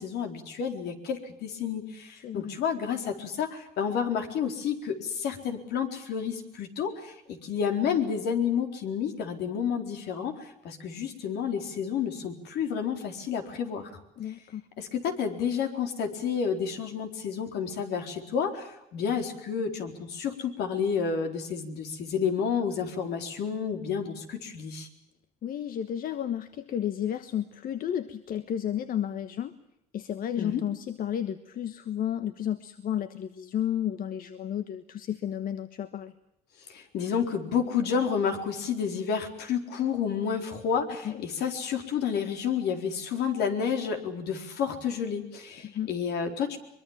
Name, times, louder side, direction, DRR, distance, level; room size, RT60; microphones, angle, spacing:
voice 1, 0.0-13.9 14.8-24.9 30.4-30.6 36.7-46.6, left 7 dB, 75° left, 5 dB, 4.2 m, -30 dB
voice 2, 14.2-14.6 25.4-29.5 29.9-36.1 41.0-41.2 45.6-45.9, left 10 dB, 55° left, 11 dB, 1.3 m, -32 dB
23.5 x 23.0 x 7.4 m, 0.85 s
cardioid pair, 110°, 17 cm